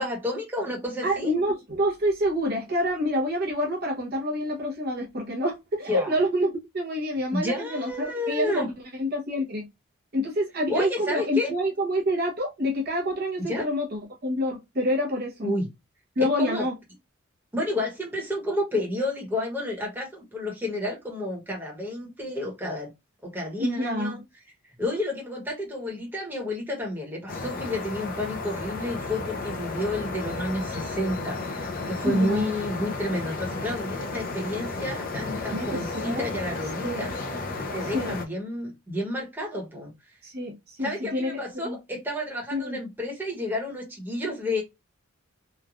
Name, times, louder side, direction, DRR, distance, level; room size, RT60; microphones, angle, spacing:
voice 1, 0.0-1.3 5.9-6.2 7.3-8.7 10.7-11.5 13.4-13.7 15.4-15.7 16.2-16.7 17.5-22.9 23.2-24.2 24.8-37.1 37.7-39.9 40.8-44.6, left 1 dB, 10° right, 1.1 m, -30 dB
voice 2, 1.0-8.6 9.0-9.7 10.1-15.5 16.2-16.7 23.6-24.2 32.0-32.5 35.5-36.3 36.8-37.0 37.9-38.2 40.2-41.8 42.5-42.8, equal, 45° right, 0.8 m, -27 dB
sound 1, 27.3-38.3, left 3 dB, 40° left, 0.5 m, -33 dB
3.1 x 2.3 x 2.4 m
head